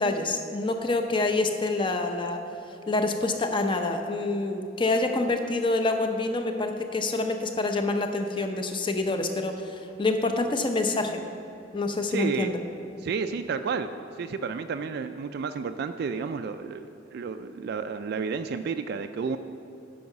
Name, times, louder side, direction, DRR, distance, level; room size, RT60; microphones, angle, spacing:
voice 1, 0.0-2.4 2.9-11.2 11.7-12.6, left 2 dB, 25° left, 6 dB, 0.6 m, -27 dB
voice 2, 12.1-12.5 13.0-13.9 14.2-19.4, right 5 dB, 55° right, 8 dB, 0.3 m, -31 dB
9.4 x 5.5 x 5.9 m, 3.0 s
head